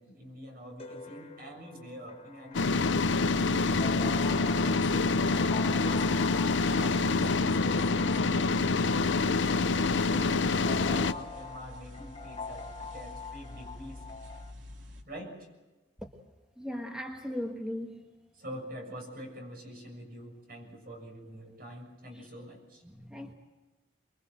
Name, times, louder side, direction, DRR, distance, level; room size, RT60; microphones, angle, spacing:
voice 1, 0.0-3.2 3.5-5.2 5.7-6.1 6.8-10.5 10.8-14.0 15.1-15.5 18.3-22.8, equal, 50° right, 2 dB, 6.8 m, -45 dB
sound 1, 0.8-14.5, left 4 dB, 30° left, 1.2 m, -45 dB
sound 2, 2.5-11.1, left 3 dB, 80° left, 0.7 m, -26 dB
sound 3, 9.8-15.0, left 1 dB, 85° right, 2.7 m, -48 dB
voice 2, 16.6-18.0 22.9-23.3, equal, 5° right, 2 dB, 1.5 m, -37 dB
24.5 x 22.5 x 7.9 m, 1.2 s
head